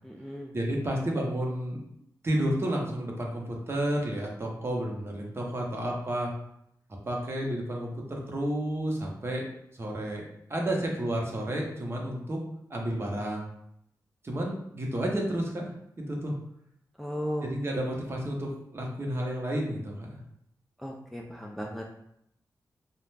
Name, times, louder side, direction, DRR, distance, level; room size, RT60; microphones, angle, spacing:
voice 1, 0.0-0.5 17.0-17.9 20.8-21.9, equal, ahead, -1 dB, 0.3 m, -36 dB
voice 2, 0.5-1.8 2.2-6.3 7.1-9.4 9.8-10.2 10.5-12.4 12.7-13.5 14.2-15.7 16.0-16.4 17.4-20.2, right 1 dB, 35° right, -1 dB, 0.7 m, -31 dB
2.4 x 2.1 x 3.2 m, 0.75 s
cardioid pair, 75°, 7 cm